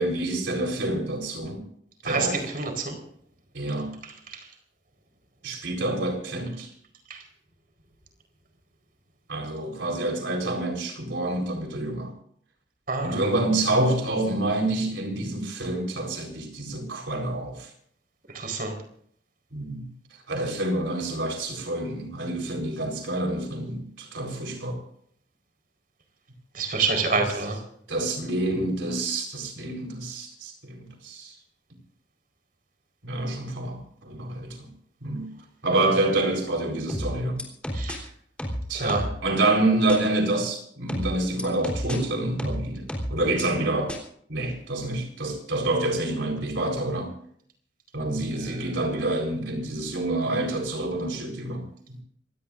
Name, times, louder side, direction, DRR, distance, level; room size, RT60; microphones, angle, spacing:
voice 1, 0.0-1.6 2.0-2.4 3.5-4.0 5.4-6.7 9.3-12.1 13.0-17.7 19.5-19.9 20.3-24.8 27.1-27.2 27.9-31.3 33.0-34.7 35.0-35.3 35.6-37.4 38.7-44.0 44.3-47.1 47.9-52.0, right 2 dB, 85° right, 4.3 m, -27 dB
voice 2, 2.0-3.0 4.3-4.4 7.1-7.2 12.9-13.2 18.3-18.7 26.5-27.6 37.7-38.0 38.7-39.0 48.3-48.7, right 4 dB, 50° right, 4.4 m, -27 dB
sound 1, 36.9-38.0 38.4-39.2 39.9-40.0 40.9-42.0 42.4-43.4 43.9-44.0, equal, 5° left, 3.7 m, -31 dB
27.0 x 17.0 x 2.6 m
head